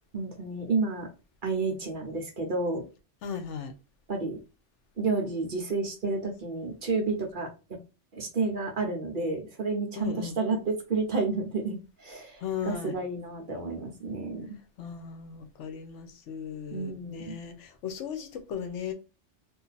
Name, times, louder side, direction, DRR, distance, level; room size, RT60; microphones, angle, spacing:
voice 1, 0.1-1.1 1.4-2.8 4.1-4.4 5.0-7.8 8.1-14.6 16.7-17.4, right 3 dB, 50° right, 0.9 m, -31 dB
voice 2, 3.2-3.7 10.0-10.4 12.4-13.0 14.8-18.9, left 7 dB, 75° left, 1.0 m, -36 dB
2.7 x 2.5 x 3.9 m
omnidirectional pair, 1.2 m